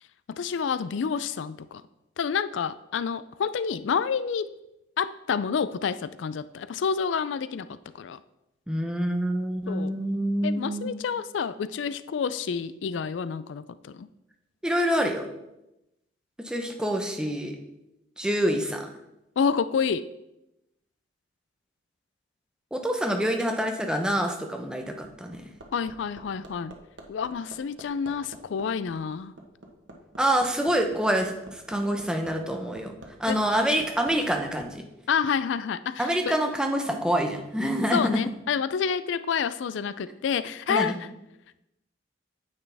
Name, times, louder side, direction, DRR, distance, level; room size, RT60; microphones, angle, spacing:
voice 1, 0.3-1.8 2.2-4.5 5.0-8.2 9.7-10.0 10.4-14.1 19.4-20.0 25.7-26.7 27.1-29.3 33.3-33.4 35.1-36.4 37.9-41.0, left 6 dB, 80° left, 15 dB, 0.4 m, -28 dB
voice 2, 8.7-10.9 14.6-15.3 16.4-17.5 18.2-18.9 22.7-25.5 30.2-32.9 33.2-34.8 36.0-38.2 40.7-40.9, equal, 5° right, 3 dB, 0.8 m, -26 dB
Hammer, 24.8-34.7 36.0-36.1, right 1 dB, 85° right, 1.3 m, -46 dB
9.4 x 8.3 x 3.4 m, 0.91 s
head